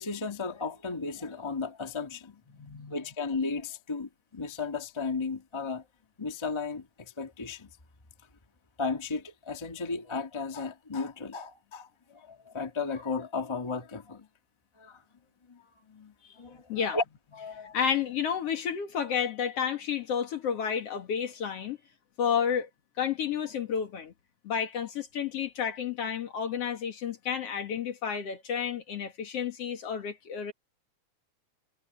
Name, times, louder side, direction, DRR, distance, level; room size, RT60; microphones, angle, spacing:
voice 1, 0.0-2.4 2.9-5.9 6.2-7.7 8.8-14.3 14.8-15.0 15.5-15.6 15.9-17.0 17.3-17.7, left 4 dB, 15° left, 0.9 m, -35 dB
voice 2, 2.6-3.0 16.2-16.4 16.7-17.0 17.7-21.8 22.2-22.7 23.0-24.1 24.4-30.5, left 7 dB, 55° left, 2.5 m, -31 dB
omnidirectional pair, 3.6 m